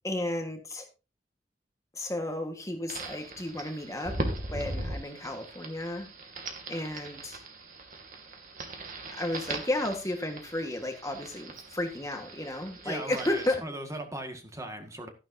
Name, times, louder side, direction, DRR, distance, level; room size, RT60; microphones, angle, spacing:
voice 1, 0.0-0.9 1.9-6.1 6.7-7.4 9.1-13.6, left 1 dB, 20° left, 4 dB, 1.5 m, -33 dB
sound 1, 2.9-13.6, right 2 dB, 50° right, 2.4 m, -39 dB
voice 2, 12.8-15.1, right 1 dB, 20° right, 5 dB, 1.7 m, -38 dB
12.5 x 11.0 x 2.7 m, 0.29 s
head